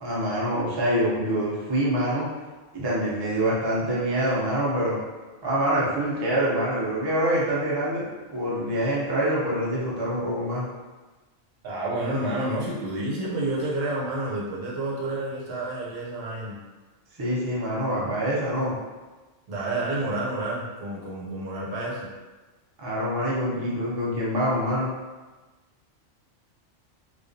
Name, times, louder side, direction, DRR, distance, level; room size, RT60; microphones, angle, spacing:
voice 1, 0.0-2.3 2.7-5.0 5.4-10.6 17.2-18.7 22.8-24.9, right 1 dB, 35° right, -6 dB, 0.4 m, -25 dB
voice 2, 11.6-16.6 19.5-22.1, right 2 dB, 80° right, -5 dB, 1.0 m, -29 dB
2.3 x 2.2 x 2.5 m, 1.2 s
omnidirectional pair, 1.3 m